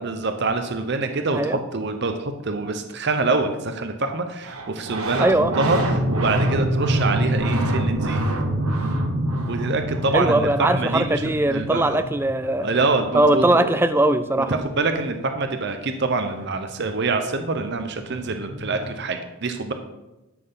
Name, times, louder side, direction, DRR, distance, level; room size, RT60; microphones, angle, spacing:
voice 1, 0.0-5.3 5.6-8.2 9.5-12.0 12.6-13.8 14.4-19.7, right 3 dB, 50° right, 6 dB, 0.7 m, -25 dB
sound 1, 4.4-14.8 16.9-17.0 17.2-19.0, right 1 dB, 80° right, 1.3 m, -26 dB
voice 2, 5.2-5.5 10.1-12.7 13.1-14.6, right 1 dB, 10° right, 11 dB, 0.4 m, -20 dB
13.0 x 6.1 x 3.9 m, 1.0 s
head